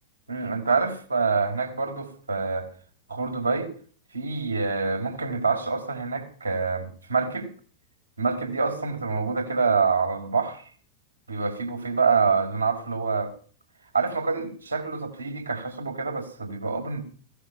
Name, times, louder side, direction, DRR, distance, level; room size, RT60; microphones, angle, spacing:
voice 1, 0.3-2.7 3.1-3.7 4.1-7.5 8.2-10.6 11.3-13.3 13.9-17.0, right 4 dB, 80° right, 4 dB, 4.3 m, -26 dB
17.0 x 11.5 x 5.8 m, 0.42 s
figure-of-eight pair, 90°, 0 cm